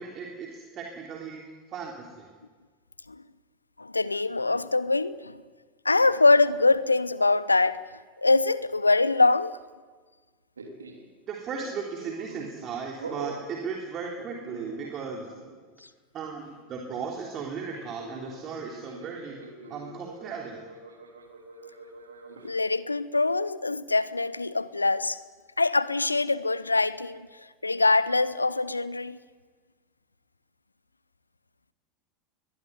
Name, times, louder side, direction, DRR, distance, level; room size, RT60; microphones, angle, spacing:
voice 1, 0.0-2.3 11.3-15.3 16.1-19.4 19.7-20.6, right 5 dB, 35° right, 3.4 m, -36 dB
voice 2, 3.8-5.4 5.8-7.8 8.2-9.6 22.4-25.2 25.6-27.3 27.6-29.2, left 3 dB, 85° left, 0.8 m, -23 dB
sound 1, 10.6-11.1 11.5-12.7 13.0-13.5 14.2-15.1 15.3-15.6 17.7-22.5, right 3 dB, 80° right, 3.2 m, -43 dB
22.5 x 19.5 x 9.5 m
figure-of-eight pair, 80°, 0 cm